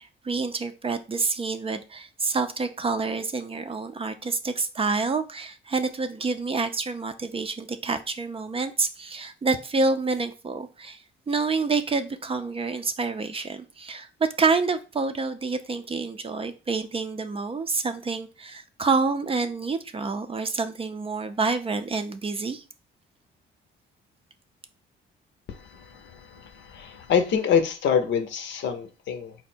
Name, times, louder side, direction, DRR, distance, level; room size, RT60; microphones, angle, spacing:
voice 1, 0.0-11.0 11.3-14.1 14.4-22.6, right 4 dB, 30° right, 0.5 m, -28 dB
voice 2, 25.5-29.4, left 7 dB, 65° left, 0.7 m, -26 dB
4.1 x 2.1 x 4.4 m
cardioid pair, 90°, 20 cm